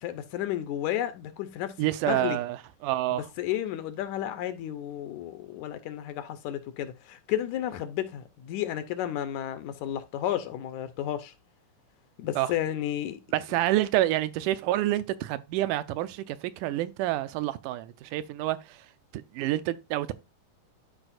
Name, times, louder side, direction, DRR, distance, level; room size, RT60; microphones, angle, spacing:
voice 1, 0.0-2.4 3.4-11.3 12.2-13.2, left 12 dB, 80° left, 2.0 m, -32 dB
voice 2, 1.8-3.3 12.4-12.5 13.3-18.9 19.1-20.1, right 15 dB, 80° right, 2.1 m, -28 dB
12.5 x 4.9 x 2.5 m
omnidirectional pair, 3.6 m